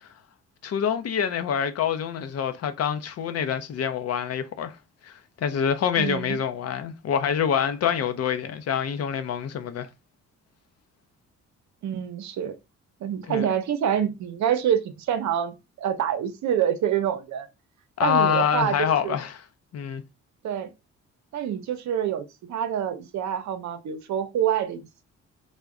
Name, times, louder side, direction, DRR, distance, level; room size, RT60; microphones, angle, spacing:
voice 1, 0.6-4.7 5.0-5.1 5.4-9.9 13.3-13.4 18.0-19.4 19.7-20.0, left 8 dB, 55° left, 0.6 m, -26 dB
voice 2, 6.0-6.4 11.8-12.6 13.0-17.5 18.0-19.2 20.4-20.7 21.3-25.0, right 9 dB, 70° right, 0.7 m, -27 dB
3.4 x 2.1 x 3.7 m
cardioid pair, 90°, 30 cm